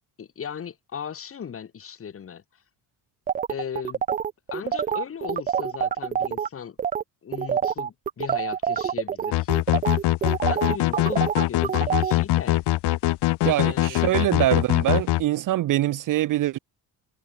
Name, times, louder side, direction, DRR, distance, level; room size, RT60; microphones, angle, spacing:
voice 1, 0.2-2.4 3.5-4.0 4.5-6.8 7.2-9.5 10.4-12.6 13.6-14.3, left 7 dB, 30° left, 2.4 m, -37 dB
sound 1, 3.3-6.5 6.8-7.0 7.3-12.1, right 8 dB, 20° right, 0.3 m, -26 dB
sound 2, 9.3-15.2, left 17 dB, 65° left, 1.3 m, -22 dB
voice 2, 13.4-16.6, right 14 dB, 45° right, 0.7 m, -24 dB
cardioid pair, 160°, 44 cm